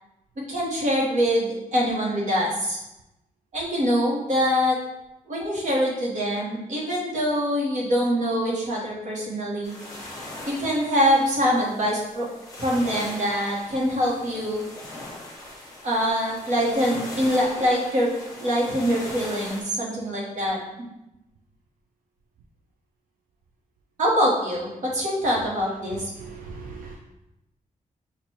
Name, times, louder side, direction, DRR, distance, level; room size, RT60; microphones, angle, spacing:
voice 1, 0.5-2.8 3.5-4.8 5.3-9.7 10.5-12.3 12.6-14.6 15.8-18.1 18.4-20.6 24.0-26.1, equal, 55° right, -4 dB, 1.2 m, -24 dB
sound 1, 9.6-19.6, left 1 dB, 25° left, 1.0 m, -40 dB
voice 2, 26.2-27.0, right 4 dB, 75° right, 1 dB, 0.4 m, -39 dB
6.3 x 2.5 x 2.9 m, 0.92 s
wide cardioid pair, 170°, 15 cm